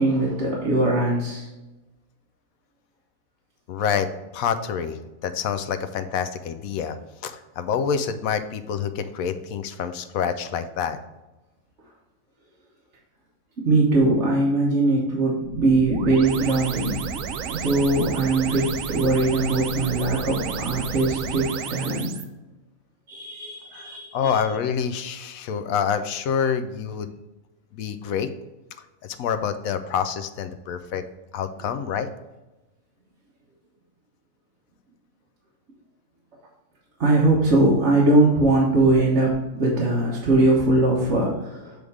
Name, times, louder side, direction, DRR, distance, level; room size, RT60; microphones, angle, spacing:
voice 1, 0.0-1.5 13.6-17.0 17.5-22.1 23.1-24.2 37.0-41.8, right 2 dB, 55° right, -5 dB, 1.4 m, -21 dB
voice 2, 3.7-7.0 7.2-11.0 23.7-27.2 27.7-28.3 29.0-31.0 31.3-32.1, left 7 dB, 85° left, 10 dB, 1.1 m, -27 dB
sound 1, 15.4-22.2, right 7 dB, 80° right, 1.0 m, -32 dB
7.8 x 3.5 x 4.8 m, 1.1 s
omnidirectional pair, 1.4 m